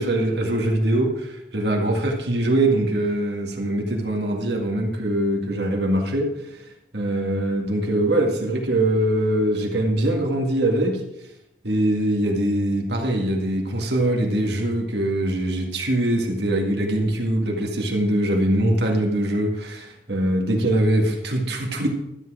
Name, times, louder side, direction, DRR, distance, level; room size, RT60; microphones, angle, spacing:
voice 1, 0.0-6.3 6.9-11.0 11.6-21.9, right 1 dB, 70° right, 1 dB, 1.9 m, -22 dB
12.5 x 8.4 x 4.9 m, 0.85 s
head